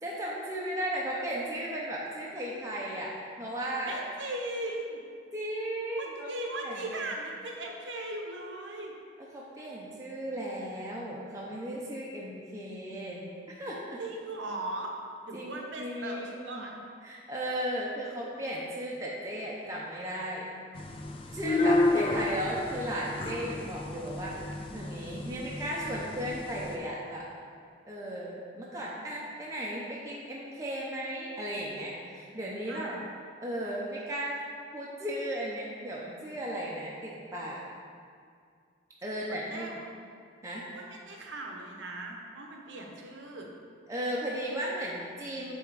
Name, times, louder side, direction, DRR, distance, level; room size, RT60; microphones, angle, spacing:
voice 1, 0.0-4.0 5.3-6.3 6.6-6.9 9.3-14.0 15.3-16.6 17.0-20.5 21.3-24.3 24.7-27.3 27.9-33.0 33.4-34.4 34.7-37.6 39.0-39.8 40.4-40.6 43.9-45.5, right 1 dB, 15° right, -5 dB, 0.6 m, -35 dB
voice 2, 3.8-5.0 6.0-8.9 14.0-14.9 15.2-16.8 18.1-18.2 32.7-33.0 39.3-39.9 40.7-43.5, right 2 dB, 75° right, 1 dB, 0.9 m, -38 dB
sound 1, 20.8-26.8, left 2 dB, 30° left, 0.3 m, -31 dB
7.5 x 3.5 x 4.7 m, 2.2 s
head